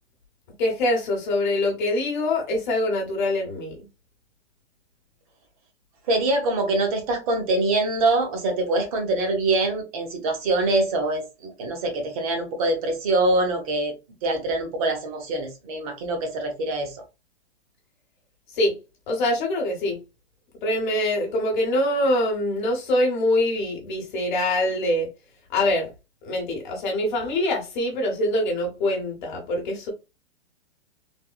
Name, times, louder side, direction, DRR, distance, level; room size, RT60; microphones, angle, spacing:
voice 1, 0.6-3.8 18.5-18.8 19.1-20.0 20.6-25.1 25.5-25.9 26.2-29.9, left 1 dB, 45° left, 1.1 m, -24 dB
voice 2, 6.1-13.9 14.2-17.0, right 2 dB, 30° right, 0.9 m, -24 dB
3.5 x 2.1 x 2.2 m
hypercardioid pair, 155°, 34 cm